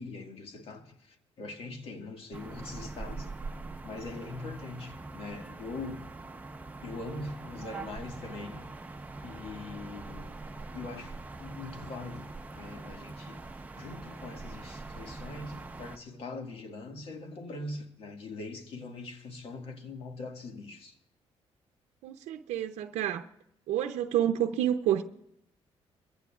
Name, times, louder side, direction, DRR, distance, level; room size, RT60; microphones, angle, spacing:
voice 1, 0.0-6.1 6.8-8.7 9.2-10.4 10.7-21.0, left 3 dB, 60° left, 1.9 m, -42 dB
sound 1, 2.3-16.0, right 3 dB, 15° right, 0.8 m, -43 dB
voice 2, 22.0-23.2 23.7-25.0, right 11 dB, 90° right, 0.7 m, -29 dB
23.5 x 15.0 x 2.4 m
cardioid pair, 110°, 11 cm